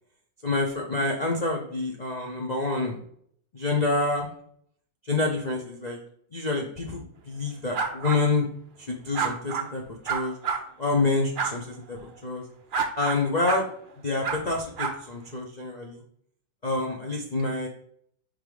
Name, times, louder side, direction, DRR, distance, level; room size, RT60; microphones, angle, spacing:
voice 1, 0.4-3.0 3.5-4.3 5.0-6.0 6.3-8.5 8.8-10.4 10.8-12.4 13.0-13.7 14.0-16.0 16.6-17.7, left 3 dB, 45° left, 0 dB, 0.5 m, -27 dB
sound 1, 7.7-8.2 9.1-9.7 10.1-10.6 11.4-11.5 12.7-13.2 13.5-13.6 14.2-14.4 14.8-14.9, right 6 dB, 70° right, 0.4 m, -28 dB
5.4 x 3.8 x 4.8 m, 0.66 s
omnidirectional pair, 2.0 m